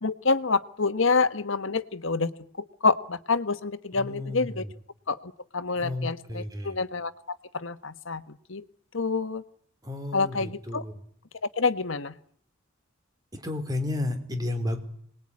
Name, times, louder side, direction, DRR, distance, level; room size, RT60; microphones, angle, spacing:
voice 1, 0.0-2.3 2.6-4.6 5.1-8.2 8.5-8.6 8.9-9.4 10.1-10.8 11.6-12.1, left 4 dB, 70° left, 11 dB, 1.3 m, -27 dB
voice 2, 3.9-4.7 5.8-6.8 9.8-10.9 13.3-14.8, left 2 dB, 20° right, 6 dB, 3.6 m, -32 dB
26.5 x 20.5 x 9.8 m, 0.65 s
head